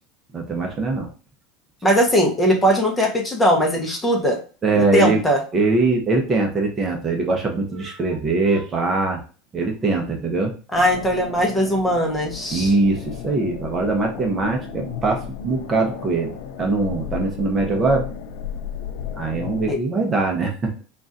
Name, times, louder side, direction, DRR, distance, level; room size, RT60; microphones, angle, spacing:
voice 1, 0.3-1.1 4.6-5.2 5.5-9.2 9.5-10.5 12.5-16.3 16.6-18.0 19.2-20.7, right 3 dB, 25° right, 2 dB, 0.8 m, -22 dB
voice 2, 1.8-4.4 4.7-5.4 10.7-12.7 19.7-19.8, equal, 10° left, 1 dB, 0.9 m, -19 dB
sound 1, 10.7-19.7, left 8 dB, 75° left, 0.6 m, -34 dB
3.8 x 2.5 x 3.9 m, 0.37 s
supercardioid pair, 140°, 0 cm